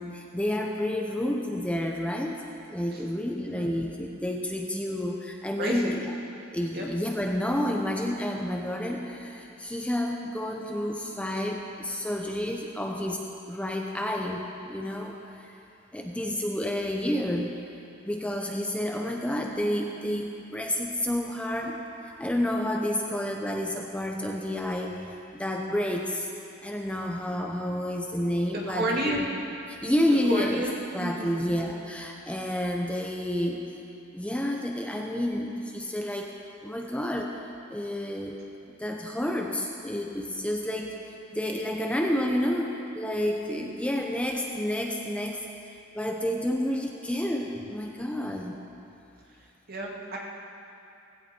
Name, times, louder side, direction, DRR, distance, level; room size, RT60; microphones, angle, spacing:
voice 1, 0.0-2.4 2.7-6.1 6.5-15.6 15.9-17.5 18.0-21.8 22.2-26.3 26.6-29.3 29.7-30.6 30.9-33.6 34.1-36.3 36.6-37.3 37.7-38.4 38.8-41.0 41.3-45.4 45.9-48.6, left 1 dB, 5° left, 1 dB, 0.9 m, -30 dB
voice 2, 5.6-5.9 6.7-6.8 28.7-29.2 30.3-31.4 49.3-50.2, right 1 dB, 55° right, -3 dB, 2.5 m, -31 dB
18.0 x 16.0 x 4.5 m, 2.7 s
head